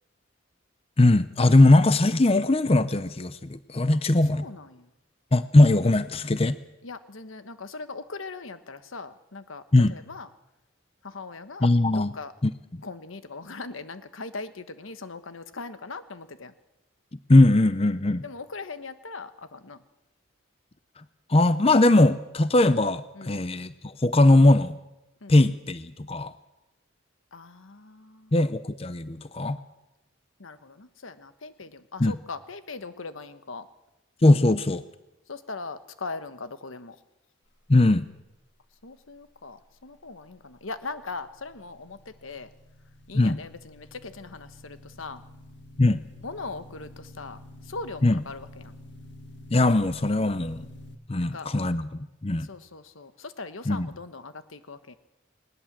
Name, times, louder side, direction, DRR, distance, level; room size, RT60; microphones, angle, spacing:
voice 1, 1.0-4.4 5.3-6.6 9.7-9.9 11.6-12.2 12.4-12.8 17.3-18.2 21.3-24.8 25.3-26.3 28.3-29.6 32.0-32.2 34.2-34.8 37.7-38.1 43.1-43.4 45.8-46.0 48.0-48.2 49.5-50.7 51.1-52.5 53.7-53.9, left 2 dB, 30° left, 13 dB, 0.6 m, -20 dB
voice 2, 4.3-4.9 6.8-10.3 11.0-12.3 12.8-16.5 18.2-19.8 23.1-23.5 25.2-25.3 27.3-28.3 30.4-33.7 35.3-37.0 38.8-42.5 43.1-45.2 46.2-48.7 51.2-51.5 52.4-54.9, left 3 dB, 90° left, 11 dB, 1.3 m, -40 dB
sound 1, 40.1-51.0, left 1 dB, 60° left, 1.8 m, -48 dB
20.0 x 19.0 x 7.5 m, 0.98 s
head